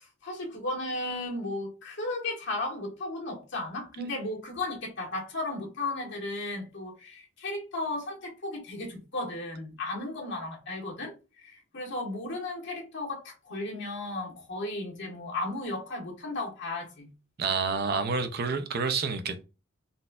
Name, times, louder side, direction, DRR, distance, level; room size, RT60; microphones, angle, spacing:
voice 1, 0.0-17.1, left 2 dB, 60° left, 1.3 m, -35 dB
voice 2, 17.4-19.4, right 5 dB, 50° right, 0.5 m, -29 dB
4.0 x 2.6 x 2.3 m
head